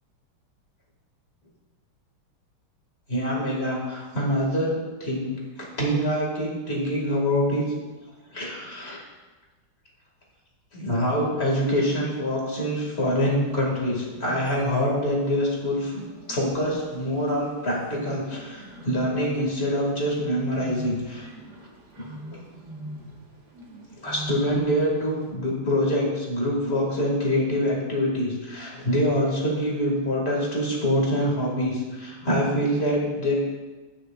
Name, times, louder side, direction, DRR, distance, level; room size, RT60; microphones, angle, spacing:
voice 1, 3.1-5.3 5.6-7.7 8.3-9.0 10.7-21.3 22.0-22.1 24.0-33.3, equal, 30° left, -3 dB, 2.4 m, -25 dB
Bird, 13.2-25.3, equal, 50° right, 2.1 m, -43 dB
17.5 x 6.5 x 2.5 m, 1.3 s
omnidirectional pair, 2.3 m